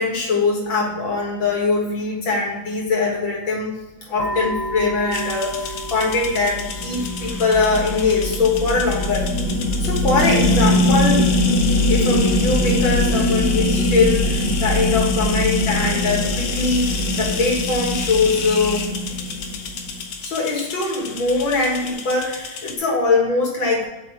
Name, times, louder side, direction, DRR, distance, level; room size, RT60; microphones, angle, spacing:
voice 1, 0.0-3.8 4.1-9.3 9.8-11.3 11.8-18.9 20.2-23.9, left 3 dB, 65° left, -2 dB, 2.4 m, -22 dB
sound 1, 4.2-11.2, equal, 50° left, 1.1 m, -34 dB
sound 2, 5.1-22.8, left 5 dB, 90° left, 1.7 m, -31 dB
sound 3, 5.5-20.0, left 1 dB, 55° right, 1.3 m, -22 dB
7.8 x 2.9 x 5.0 m, 1.1 s
omnidirectional pair, 2.3 m